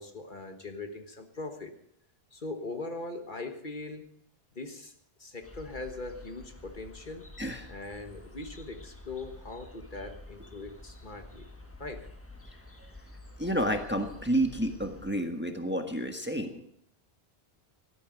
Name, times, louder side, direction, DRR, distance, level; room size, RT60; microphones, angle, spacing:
voice 1, 0.0-1.7 2.3-4.1 4.5-4.9 5.2-7.2 7.7-11.4 11.8-12.1, left 2 dB, 50° left, 6 dB, 1.6 m, -40 dB
sound 1, 5.4-15.1, left 2 dB, 15° left, 1.3 m, -49 dB
voice 2, 7.4-7.7 13.4-16.7, right 1 dB, 10° right, 5 dB, 1.4 m, -30 dB
18.0 x 13.0 x 5.2 m, 0.69 s
omnidirectional pair, 1.1 m